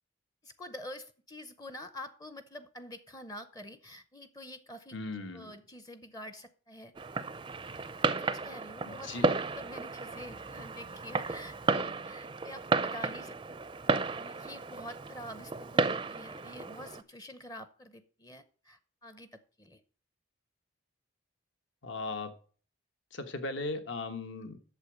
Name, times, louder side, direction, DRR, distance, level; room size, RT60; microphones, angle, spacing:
voice 1, 0.4-5.0 5.3-6.9 8.2-9.1 9.4-13.4 14.1-19.8, left 1 dB, 20° left, 12 dB, 0.6 m, -47 dB
voice 2, 4.9-5.5 8.8-9.3 21.8-22.3 23.1-24.6, left 3 dB, 65° left, 9 dB, 1.2 m, -38 dB
Fireworks, 7.0-17.0, right 4 dB, 25° right, 0.4 m, -33 dB
8.3 x 7.0 x 6.2 m, 0.42 s
head